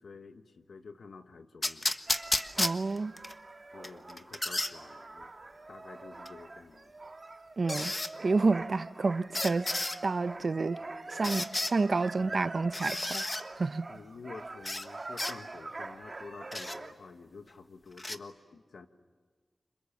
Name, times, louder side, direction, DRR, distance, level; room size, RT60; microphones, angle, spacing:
voice 1, 0.0-1.9 3.7-5.3 5.7-6.9 10.8-10.9 12.2-12.5 13.9-18.9, left 4 dB, 85° left, 1.4 m, -49 dB
sound 1, 1.6-3.3 3.8-4.7 6.3-6.4 7.7-8.1 9.3-10.0 11.2-11.7 12.7-13.4 14.6-14.9 15.2-15.3 16.5-16.8 18.0-18.2, left 2 dB, 30° left, 1.3 m, -32 dB
sound 2, 2.1-16.9, right 2 dB, 45° right, 1.7 m, -44 dB
voice 2, 2.6-3.1 7.6-7.9 8.2-9.7 10.0-10.8 11.1-13.2 13.5-13.9, right 3 dB, 60° right, 0.7 m, -29 dB
29.5 x 26.5 x 7.4 m
cardioid pair, 60°, 0 cm